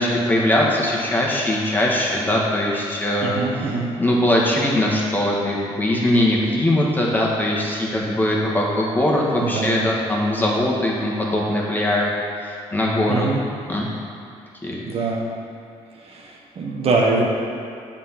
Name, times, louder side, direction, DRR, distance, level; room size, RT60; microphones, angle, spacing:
voice 1, 0.0-12.1 12.4-13.3 13.7-13.9 14.6-14.8, left 1 dB, 15° left, -4 dB, 1.6 m, -21 dB
voice 2, 3.2-3.9 9.4-9.9 13.1-13.4 14.9-15.3 16.0-17.2, right 3 dB, 55° right, -1 dB, 1.2 m, -23 dB
7.4 x 4.4 x 5.8 m, 2.4 s
cardioid pair, 75°, 12 cm